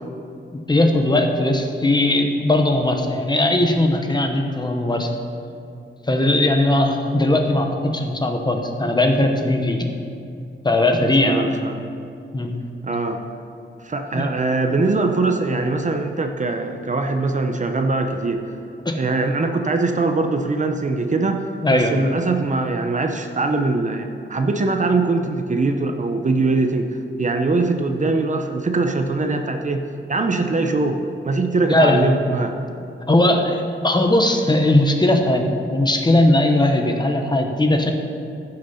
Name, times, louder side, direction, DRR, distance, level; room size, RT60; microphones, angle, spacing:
voice 1, 0.5-5.1 6.1-9.9 10.6-11.4 12.3-12.6 14.1-14.3 18.8-19.0 21.6-22.0 31.7-32.2 33.1-37.9, left 1 dB, 20° left, 4 dB, 0.9 m, -19 dB
voice 2, 11.0-11.9 12.8-13.2 13.8-18.5 19.0-21.4 21.7-26.9 27.2-29.8 30.1-32.5, right 3 dB, 35° right, 5 dB, 0.7 m, -22 dB
15.5 x 6.6 x 5.7 m, 2.6 s
wide cardioid pair, 175°, 21 cm